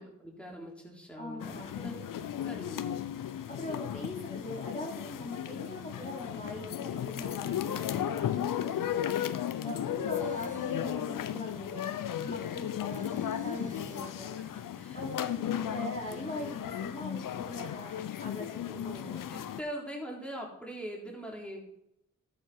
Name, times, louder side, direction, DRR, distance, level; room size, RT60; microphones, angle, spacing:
voice 1, 0.0-2.0 2.5-2.9 14.4-15.5 18.7-21.7, equal, 5° left, -2 dB, 3.6 m, -43 dB
voice 2, 1.2-2.0 2.3-2.5 3.2-14.5 14.9-15.2 15.6-19.1, left 1 dB, 20° left, -2 dB, 3.5 m, -42 dB
sound 1, 1.4-19.6, left 10 dB, 70° left, 0.7 m, -35 dB
sound 2, 10.1-10.9 11.5-11.6 12.5-14.2, right 2 dB, 25° right, 1.2 m, -51 dB
13.5 x 8.0 x 4.5 m, 0.78 s
supercardioid pair, 45°, 33 cm